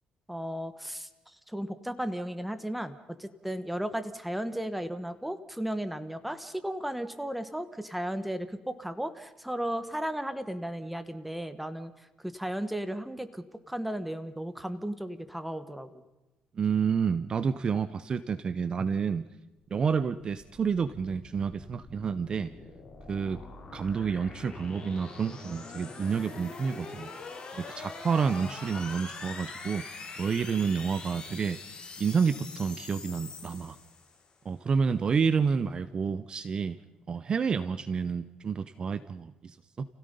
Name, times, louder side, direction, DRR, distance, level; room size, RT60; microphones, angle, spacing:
voice 1, 0.3-16.0, right 1 dB, 5° right, 11 dB, 1.5 m, -35 dB
voice 2, 16.6-19.2 19.7-22.5 23.1-23.4 23.7-27.1 27.5-29.8 30.2-31.6 32.0-33.8 34.4-36.8 37.1-39.9, right 6 dB, 40° right, 14 dB, 0.7 m, -29 dB
sound 1, 20.4-34.3, left 4 dB, 35° left, 4.9 m, -44 dB
30.0 x 16.5 x 5.4 m, 1.0 s
cardioid pair, 110°, 2 cm